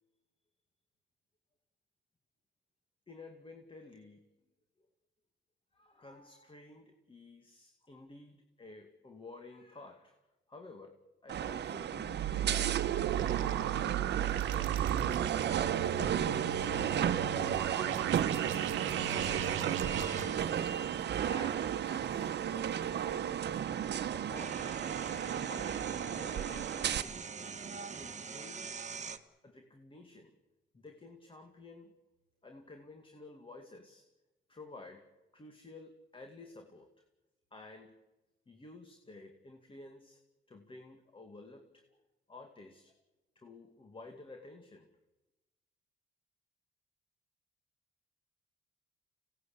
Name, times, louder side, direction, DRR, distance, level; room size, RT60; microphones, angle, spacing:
voice 1, 3.1-4.3 5.7-10.1 10.5-18.4 18.8-19.5 20.1-20.6 21.3-23.7 24.1-24.9 25.2-27.2 28.0-28.8 29.4-30.3 30.7-31.9 32.4-34.0 34.5-35.1 35.3-36.9 37.5-38.0 38.5-40.2 40.5-41.8 42.3-42.9 43.4-44.9, left 2 dB, 25° left, 5 dB, 2.3 m, -52 dB
sound 1, 11.3-27.0, right 9 dB, 60° right, 1.2 m, -34 dB
sound 2, 12.1-20.2, right 10 dB, 90° right, 1.3 m, -35 dB
sound 3, 17.8-18.3 19.0-20.9 21.8-21.9 23.4-23.5 23.8-29.2, right 5 dB, 35° right, 1.7 m, -43 dB
25.5 x 18.0 x 8.7 m, 1.1 s
cardioid pair, 90°, 20 cm